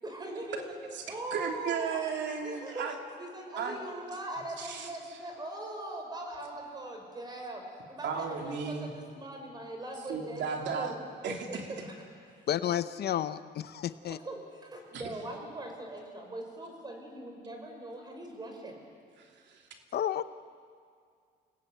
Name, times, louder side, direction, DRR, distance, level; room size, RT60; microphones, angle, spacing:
voice 1, 0.0-0.8 1.1-2.0 2.4-2.9 3.2-10.9 11.2-12.5 14.1-18.8, right 1 dB, 20° right, 2 dB, 5.4 m, -41 dB
voice 2, 1.3-2.9 3.6-3.8 4.6-4.9 8.0-8.9 10.1-11.0 11.2-11.6 14.9-15.0 19.2-19.6, right 6 dB, 80° right, 3 dB, 3.0 m, -35 dB
voice 3, 12.5-14.2 19.9-20.2, left 10 dB, 60° left, 13 dB, 0.8 m, -31 dB
29.0 x 19.5 x 9.3 m, 2.1 s
cardioid pair, 145°, 18 cm